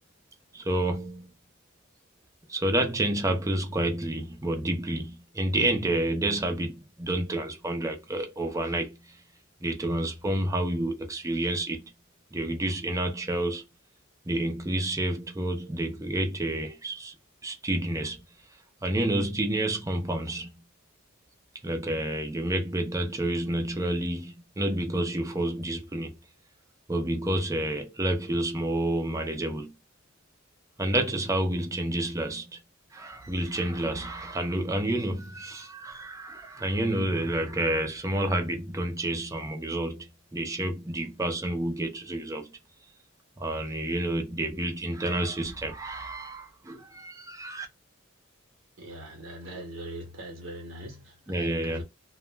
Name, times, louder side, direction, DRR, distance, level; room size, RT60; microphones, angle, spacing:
voice 1, 0.5-1.3 2.5-9.2 9.6-11.9 12.3-13.6 14.3-17.1 17.4-18.2 18.8-20.5 21.6-26.2 26.9-29.7 30.8-32.6 32.9-42.5 43.4-47.7 51.3-51.8, right 1 dB, 15° right, 0.5 m, -29 dB
voice 2, 48.8-51.8, right 1 dB, 60° right, 0.8 m, -41 dB
2.3 x 2.0 x 3.2 m
head